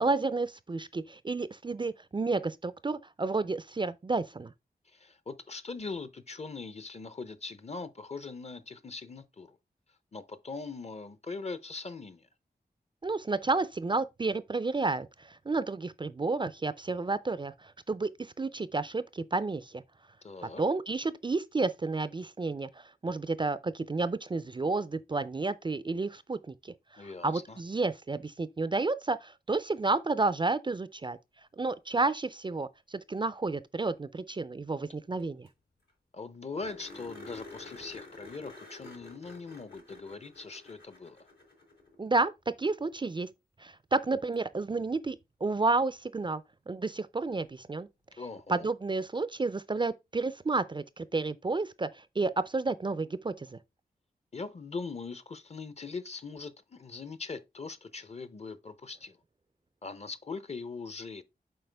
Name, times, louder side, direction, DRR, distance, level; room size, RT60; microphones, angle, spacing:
voice 1, 0.0-4.5 13.0-19.8 20.6-31.2 31.6-35.5 42.0-42.3 42.6-43.3 43.6-45.2 45.4-46.4 46.7-47.9 48.5-53.6, right 3 dB, 30° right, 0.4 m, -31 dB
voice 2, 4.9-9.6 10.1-12.3 20.2-20.6 27.0-27.6 36.1-41.3 48.2-48.7 54.3-59.2 59.8-61.2, left 4 dB, 40° left, 0.7 m, -41 dB
sound 1, 35.2-35.3 35.5-35.6 35.9-36.0 36.6-42.0 44.3-44.4 47.3-47.4, left 2 dB, 85° left, 4.1 m, -49 dB
7.7 x 4.6 x 3.4 m
wide cardioid pair, 110°, 16 cm